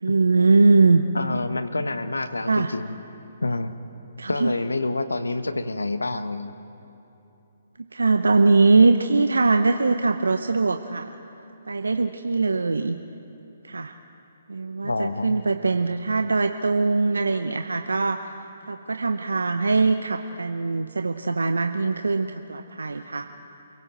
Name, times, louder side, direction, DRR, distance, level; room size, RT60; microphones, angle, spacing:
voice 1, 0.0-1.0 2.5-2.7 4.2-4.5 7.9-11.1 11.7-13.0 13.6-13.9 14.5-18.3 18.7-23.3, right 3 dB, 80° right, 7 dB, 0.8 m, -21 dB
voice 2, 1.1-3.0 3.4-3.7 4.3-6.5 14.8-15.4, left 2 dB, 90° left, 10 dB, 1.2 m, -27 dB
28.5 x 17.0 x 7.8 m, 2.9 s
figure-of-eight pair, 135°, 0 cm